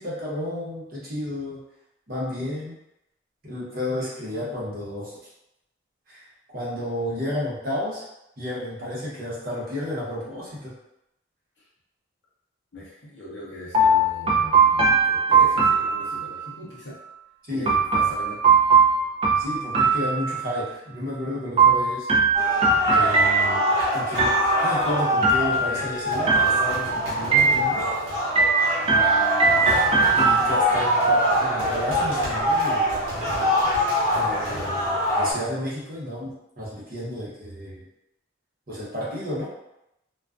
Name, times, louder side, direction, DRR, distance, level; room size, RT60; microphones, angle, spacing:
voice 1, 0.0-1.6 2.1-2.7 3.4-5.1 6.1-6.2 6.5-8.0 8.4-10.7 17.5-17.7 19.4-22.1 22.9-24.3 24.6-27.8 28.8-29.8 30.2-32.9 34.1-37.9 38.7-39.5, left 1 dB, 45° right, -7 dB, 0.9 m, -32 dB
voice 2, 12.7-17.0 17.5-18.6, equal, 60° left, -5 dB, 0.6 m, -40 dB
sound 1, 13.7-16.5 17.7-20.7 21.6-23.8 24.2-24.8 25.2-25.9 26.3-26.9 27.3-28.0 28.4-30.8, right 4 dB, 25° right, 0.3 m, -20 dB
sound 2, 22.3-35.3, equal, 75° right, 1.0 m, -24 dB
2.3 x 2.3 x 2.3 m, 0.85 s
head